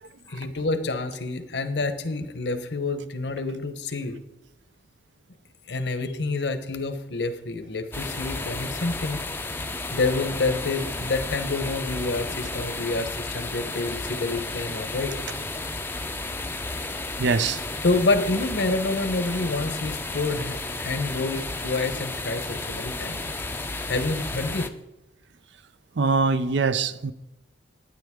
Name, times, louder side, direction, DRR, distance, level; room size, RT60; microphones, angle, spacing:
voice 1, 0.3-4.2 5.7-9.2 9.9-15.1 17.8-23.2 23.9-24.7, left 3 dB, 70° left, 1.0 m, -28 dB
sound 1, 7.9-24.7, left 2 dB, 10° left, 0.5 m, -33 dB
voice 2, 17.2-17.6 26.0-27.1, right 4 dB, 75° right, 0.6 m, -23 dB
11.0 x 9.9 x 3.6 m
head